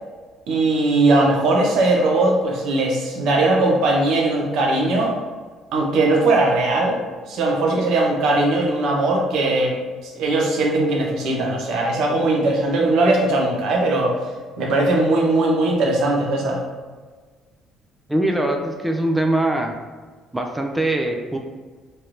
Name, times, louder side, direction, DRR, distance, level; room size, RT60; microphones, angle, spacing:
voice 1, 0.5-5.1 5.7-7.0 7.3-9.7 10.0-14.2 14.6-16.6, right 2 dB, 70° right, -1 dB, 0.7 m, -19 dB
voice 2, 18.1-19.8 20.3-21.4, right 1 dB, 10° right, 2 dB, 0.3 m, -22 dB
3.2 x 2.9 x 2.5 m, 1.4 s
supercardioid pair, 85°, 0 cm